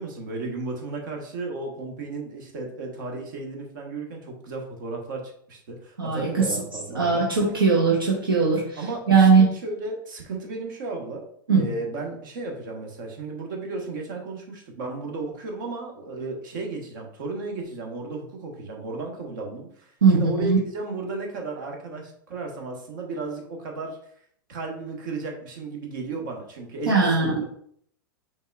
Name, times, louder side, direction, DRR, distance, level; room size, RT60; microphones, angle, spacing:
voice 1, 0.0-5.2 5.5-7.2 8.8-11.2 11.5-24.0 24.5-27.4, right 3 dB, 65° right, 1 dB, 1.3 m, -34 dB
voice 2, 6.0-6.6 6.9-9.5 11.5-11.7 20.0-20.6 26.9-27.4, right 4 dB, 85° right, -2 dB, 0.8 m, -20 dB
5.4 x 3.5 x 2.4 m, 0.64 s
hypercardioid pair, 95°, 11 cm